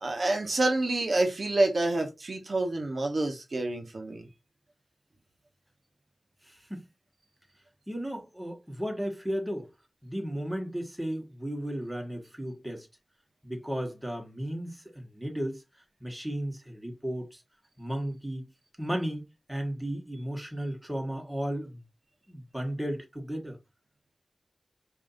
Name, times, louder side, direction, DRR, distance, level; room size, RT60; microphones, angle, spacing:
voice 1, 0.0-4.3, right 2 dB, 65° right, 1.0 m, -28 dB
voice 2, 6.4-6.8 7.9-9.7 10.0-12.9 13.4-15.6 16.0-17.4 17.8-18.5 18.8-21.8 22.3-23.6, equal, 10° right, 1.6 m, -34 dB
4.9 x 2.7 x 2.6 m
cardioid pair, 45°, 0 cm